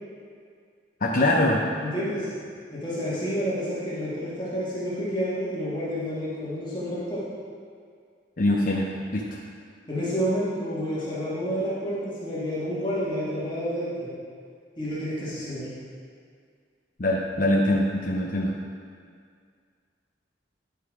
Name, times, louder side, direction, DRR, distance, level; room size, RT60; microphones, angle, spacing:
voice 1, 1.0-1.6 8.4-9.4 17.0-18.5, left 1 dB, 50° left, -3 dB, 0.8 m, -23 dB
voice 2, 1.8-2.3 2.7-7.2 9.9-14.1 14.8-15.7, equal, 25° left, -9 dB, 1.9 m, -29 dB
10.5 x 5.5 x 4.9 m, 2.1 s
head